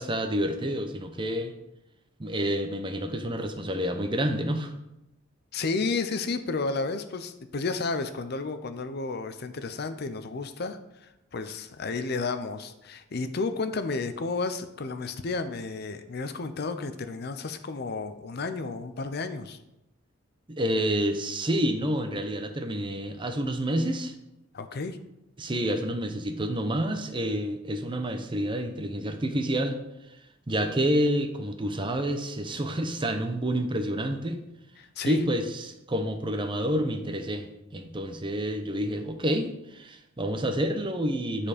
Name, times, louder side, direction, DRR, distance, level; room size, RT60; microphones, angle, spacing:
voice 1, 0.0-1.5 2.2-4.7 20.5-24.1 25.4-29.8 30.1-30.2 30.5-34.4 35.0-41.5, equal, 25° right, 7 dB, 0.7 m, -28 dB
voice 2, 5.5-19.6 24.5-25.0 34.8-35.2, left 3 dB, 50° left, 9 dB, 0.6 m, -32 dB
10.0 x 4.3 x 5.0 m, 0.90 s
head